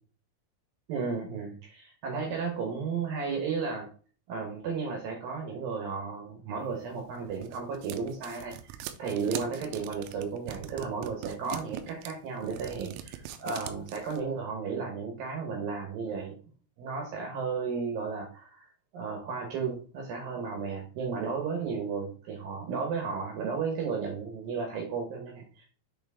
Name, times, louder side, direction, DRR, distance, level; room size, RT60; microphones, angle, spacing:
voice 1, 0.9-3.9 4.3-8.6 9.0-16.4 16.8-18.7 18.9-25.7, right 5 dB, 75° right, 2 dB, 2.1 m, -34 dB
sound 1, 6.9-14.2, right 12 dB, 90° right, 3.2 m, -41 dB
8.1 x 3.5 x 3.5 m, 0.40 s
omnidirectional pair, 5.7 m